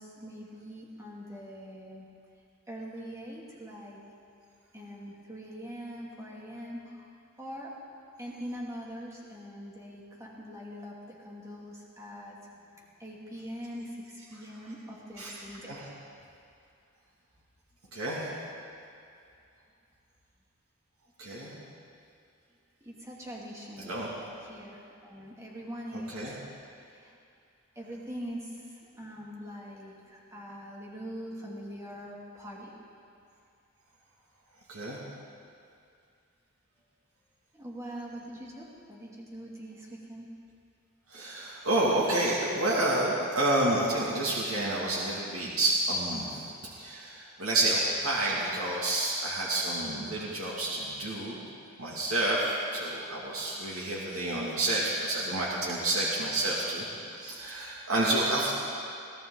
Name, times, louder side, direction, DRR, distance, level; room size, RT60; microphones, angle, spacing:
voice 1, 0.0-2.1 2.7-4.0 4.7-7.1 7.4-7.7 8.2-12.4 13.0-15.8 22.8-24.0 24.5-26.1 26.9-27.1 27.8-28.7 28.9-32.8 37.5-40.3, equal, 15° right, -4 dB, 2.5 m, -42 dB
voice 2, 17.9-18.3 21.2-21.5 23.8-24.1 25.9-26.3 34.7-35.0 41.1-46.5 46.8-51.4 51.8-58.5, right 1 dB, 80° right, -5 dB, 2.5 m, -29 dB
22.0 x 16.0 x 4.0 m, 2.5 s
head